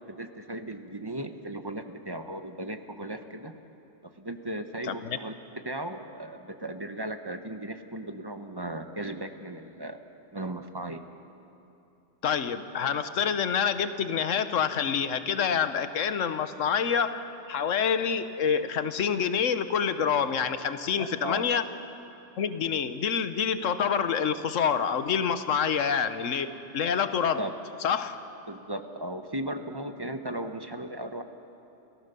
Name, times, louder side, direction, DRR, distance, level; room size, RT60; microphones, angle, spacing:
voice 1, 0.1-3.5 4.0-5.3 5.6-10.0 10.3-11.0 21.0-21.5 27.4-27.5 28.5-31.2, right 1 dB, 20° right, 7 dB, 0.8 m, -36 dB
voice 2, 12.2-21.6 22.4-27.5 27.8-28.2, left 7 dB, 80° left, 11 dB, 1.3 m, -27 dB
29.5 x 14.5 x 6.8 m, 2.8 s
omnidirectional pair, 1.3 m